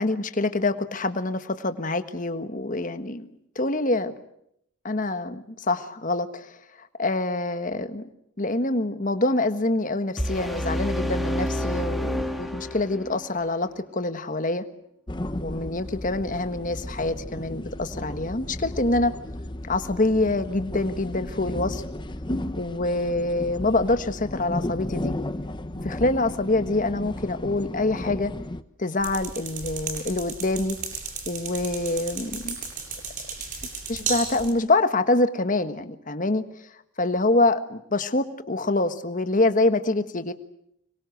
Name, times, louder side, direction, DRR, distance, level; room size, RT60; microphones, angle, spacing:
voice 1, 0.0-3.3 3.5-4.1 4.8-6.5 7.0-8.0 8.4-14.7 15.4-19.1 19.7-21.8 22.6-25.1 25.8-28.3 28.8-30.8 31.3-32.6 33.9-36.4 37.0-40.3, left 2 dB, 40° left, 10 dB, 1.4 m, -25 dB
sound 1, 10.2-13.2, equal, ahead, 2.0 m, -28 dB
sound 2, 15.1-28.6, left 1 dB, 20° left, 0.9 m, -34 dB
sound 3, 29.0-34.5, right 4 dB, 40° right, 7.9 m, -34 dB
25.5 x 23.0 x 8.0 m, 0.75 s
head